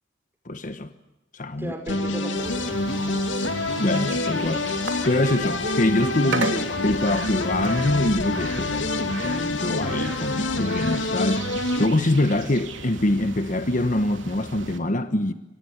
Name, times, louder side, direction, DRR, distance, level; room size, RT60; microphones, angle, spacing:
voice 1, 0.4-0.9 1.3-1.7 3.8-4.7 5.0-6.5 6.8-11.5 11.8-15.3, left 1 dB, 45° left, 1.2 m, -24 dB
voice 2, 1.6-3.5 6.3-6.7, right 1 dB, 10° right, 5.7 m, -36 dB
sound 1, 1.9-11.9, left 2 dB, 80° left, 2.8 m, -27 dB
sound 2, 2.4-14.8, right 3 dB, 85° right, 3.1 m, -36 dB
27.5 x 25.0 x 8.1 m
head